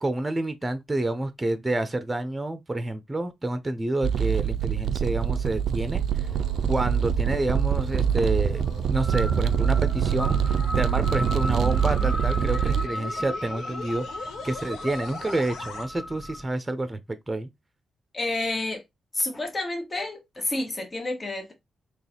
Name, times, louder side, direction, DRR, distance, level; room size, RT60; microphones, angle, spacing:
voice 1, 0.0-6.3 6.7-17.0 17.3-17.5, right 2 dB, 20° right, 0.6 m, -29 dB
sound 1, 4.0-12.9, right 8 dB, 70° right, 0.3 m, -25 dB
sound 2, 5.8-15.9, left 6 dB, 75° left, 0.7 m, -40 dB
sound 3, 8.0-16.4, left 1 dB, 10° left, 0.9 m, -36 dB
voice 2, 18.1-18.8 19.1-21.5, left 2 dB, 30° left, 1.5 m, -29 dB
3.8 x 3.0 x 2.9 m
hypercardioid pair, 40°, 0 cm